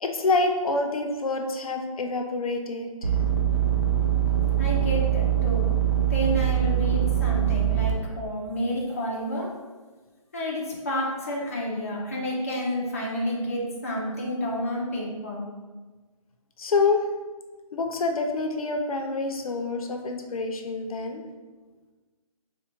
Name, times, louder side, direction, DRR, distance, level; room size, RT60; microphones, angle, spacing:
voice 1, 0.0-3.1 16.6-17.0 17.7-21.2, left 3 dB, 75° left, 4 dB, 0.5 m, -27 dB
sound 1, 3.0-7.9, right 11 dB, 55° right, 0.6 m, -23 dB
voice 2, 4.6-5.7 6.1-9.5 10.3-15.4, equal, 25° left, -5 dB, 0.4 m, -30 dB
4.3 x 2.1 x 2.9 m, 1.3 s
hypercardioid pair, 175°, 18 cm